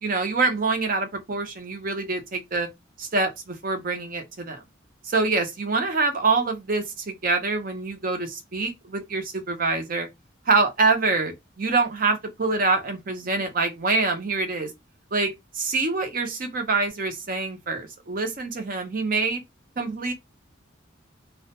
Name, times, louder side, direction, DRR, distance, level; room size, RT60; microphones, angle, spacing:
voice 1, 0.0-2.7 3.0-4.6 5.0-10.1 10.5-14.7 15.1-19.4 19.8-20.1, right 3 dB, 45° right, 0.6 m, -25 dB
2.3 x 2.1 x 2.8 m
head